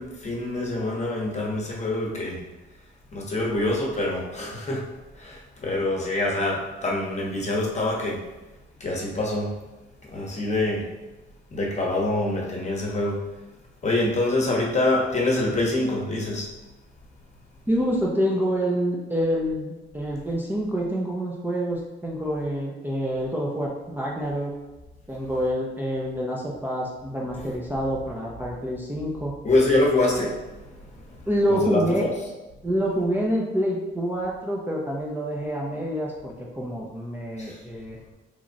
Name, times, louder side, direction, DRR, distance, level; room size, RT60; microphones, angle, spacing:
voice 1, 0.0-2.4 3.1-4.9 5.1-8.2 8.8-9.5 10.0-10.9 11.5-13.2 13.8-16.5 27.3-27.5 29.4-31.2 31.5-32.1 37.4-37.6, left 2 dB, 35° left, -2 dB, 0.9 m, -25 dB
voice 2, 17.7-24.5 25.1-29.4 31.3-32.0 32.6-38.0, equal, 10° right, -4 dB, 0.6 m, -27 dB
3.1 x 2.4 x 3.8 m, 1.1 s
cardioid pair, 90°, 20 cm